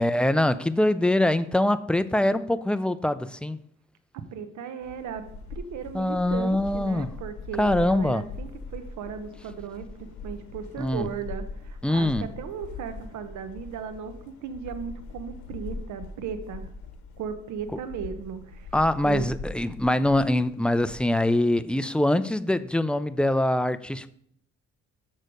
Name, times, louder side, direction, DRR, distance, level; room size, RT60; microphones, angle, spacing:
voice 1, 0.0-3.6 5.9-7.1 7.6-8.2 10.8-11.1 11.8-12.3 18.7-24.1, left 1 dB, 5° left, 0.3 m, -23 dB
voice 2, 4.3-16.7 17.2-18.7 19.0-19.3, right 7 dB, 75° right, 0.9 m, -36 dB
sound 1, 4.8-21.0, left 3 dB, 70° left, 1.1 m, -41 dB
6.5 x 6.3 x 5.1 m
cardioid pair, 90°, 30 cm